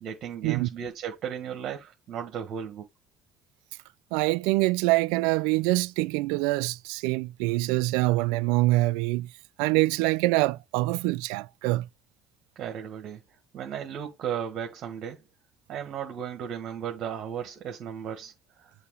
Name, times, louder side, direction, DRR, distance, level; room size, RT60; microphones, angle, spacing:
voice 1, 0.0-2.8 12.5-13.2 13.5-15.2 15.7-18.7, right 8 dB, 60° right, 1.6 m, -35 dB
voice 2, 4.1-9.3 9.6-11.9, right 20 dB, 85° right, 0.3 m, -25 dB
6.7 x 2.9 x 4.8 m
supercardioid pair, 90°, 0 cm